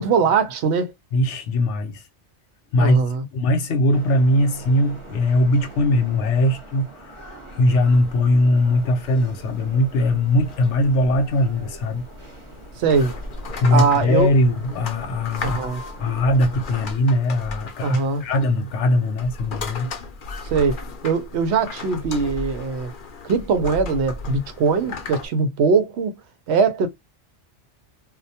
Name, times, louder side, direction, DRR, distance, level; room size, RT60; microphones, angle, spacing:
voice 1, 0.0-0.9 2.8-3.2 12.8-13.1 13.7-14.3 15.4-15.8 17.8-18.2 20.5-20.8 21.0-22.9 23.2-26.2 26.5-26.9, right 5 dB, 75° right, 0.8 m, -21 dB
voice 2, 1.1-2.0 2.7-3.0 3.3-7.2 7.5-12.0 13.6-15.7 16.0-19.9, left 1 dB, 80° left, 0.9 m, -20 dB
sound 1, 3.9-16.9, right 1 dB, 30° right, 0.7 m, -42 dB
sound 2, 7.9-25.3, left 3 dB, 55° left, 0.7 m, -36 dB
2.2 x 2.1 x 2.6 m
omnidirectional pair, 1.2 m